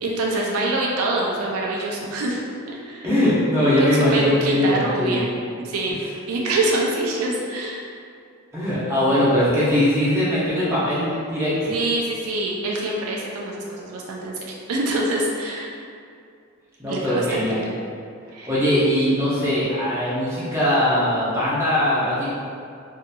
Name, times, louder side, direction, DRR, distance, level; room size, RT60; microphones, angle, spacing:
voice 1, 0.0-2.4 2.7-3.1 3.8-5.3 5.6-6.0 6.3-7.9 11.7-15.7 16.9-17.7 18.3-18.5, right 2 dB, 80° right, -2 dB, 0.4 m, -25 dB
voice 2, 3.0-5.2 8.5-11.7 16.8-17.7 18.5-22.3, left 1 dB, 10° right, -11 dB, 0.7 m, -21 dB
2.7 x 2.6 x 2.2 m, 2.3 s
head